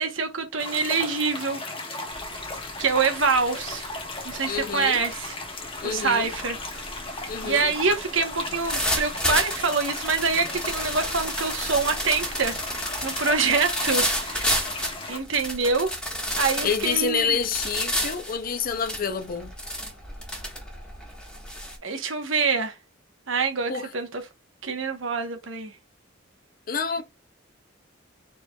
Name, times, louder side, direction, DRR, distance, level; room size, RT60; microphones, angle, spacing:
voice 1, 0.0-1.6 2.8-3.9 4.2-5.4 5.8-6.6 7.4-12.6 13.0-14.5 15.1-15.9 16.4-17.4 21.8-22.8 23.3-24.2 24.6-25.7, right 4 dB, 85° right, 1.2 m, -25 dB
sound 1, 0.6-15.2, left 2 dB, 30° left, 1.3 m, -36 dB
sound 2, 2.2-2.5 2.8-21.8, equal, 5° left, 1.4 m, -31 dB
voice 2, 4.5-5.0 5.8-6.3 7.3-7.7 16.6-19.5 23.7-23.9 26.7-27.0, left 6 dB, 45° left, 0.6 m, -27 dB
4.5 x 4.2 x 2.4 m
head